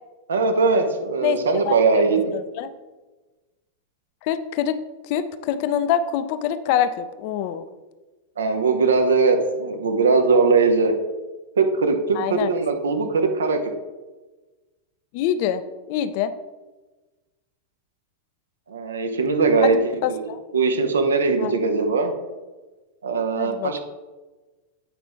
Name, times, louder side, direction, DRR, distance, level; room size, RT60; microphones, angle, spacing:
voice 1, 0.3-2.3 8.4-10.9 11.6-13.6 18.7-20.2 20.5-22.1 23.0-23.8, right 4 dB, 70° right, 5 dB, 0.9 m, -20 dB
voice 2, 1.6-2.7 4.2-4.8 5.0-7.6 12.1-12.5 15.1-15.6 15.9-16.3 19.6-19.7 20.0-20.4 21.4-21.5 23.4-23.8, left 9 dB, 45° left, 12 dB, 0.4 m, -25 dB
8.2 x 4.9 x 3.5 m, 1.2 s
figure-of-eight pair, 90°, 0 cm